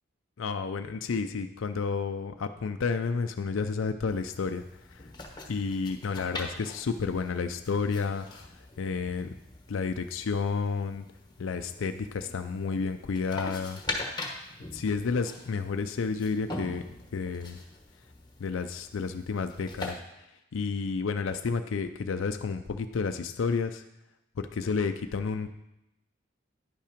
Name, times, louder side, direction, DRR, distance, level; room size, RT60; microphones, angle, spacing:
voice 1, 0.4-5.1 5.5-8.3 8.5-9.3 9.7-11.0 11.4-13.8 14.7-16.8 17.1-17.6 18.4-20.3 20.5-23.8 24.4-25.5, left 5 dB, 70° left, 8 dB, 0.4 m, -31 dB
sound 1, 4.1-19.9, left 2 dB, 20° left, 1.0 m, -42 dB
10.0 x 5.6 x 5.1 m, 0.90 s
head